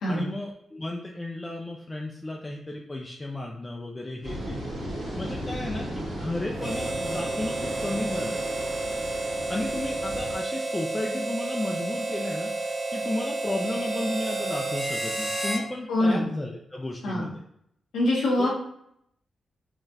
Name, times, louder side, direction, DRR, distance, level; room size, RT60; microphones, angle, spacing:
voice 1, 0.0-4.6 5.2-5.9 6.2-8.4 9.5-17.4 18.4-18.5, left 2 dB, 30° left, 0 dB, 0.4 m, -33 dB
sound 1, 4.2-10.3, equal, 75° right, 1.1 m, -35 dB
Harmonica, 6.6-15.7, right 2 dB, 25° right, 0.8 m, -31 dB
voice 2, 15.9-16.3 17.0-17.3 17.9-18.5, left 1 dB, 85° left, -5 dB, 0.8 m, -24 dB
3.7 x 2.3 x 2.7 m, 0.73 s
supercardioid pair, 40°, 0 cm